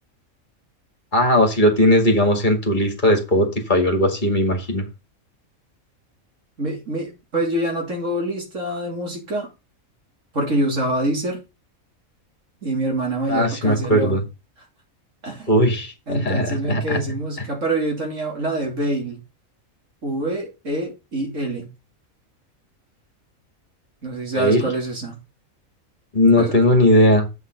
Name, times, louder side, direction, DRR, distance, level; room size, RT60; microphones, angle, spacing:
voice 1, 1.1-4.9 13.3-14.2 15.5-17.0 24.3-24.7 26.1-27.3, left 1 dB, 35° left, 2.4 m, -18 dB
voice 2, 6.6-9.5 10.3-11.4 12.6-14.2 15.2-15.5 16.1-19.2 20.0-21.7 24.0-25.2 26.4-26.6, right 1 dB, 60° right, 3.5 m, -25 dB
8.2 x 5.7 x 5.4 m
omnidirectional pair, 1.5 m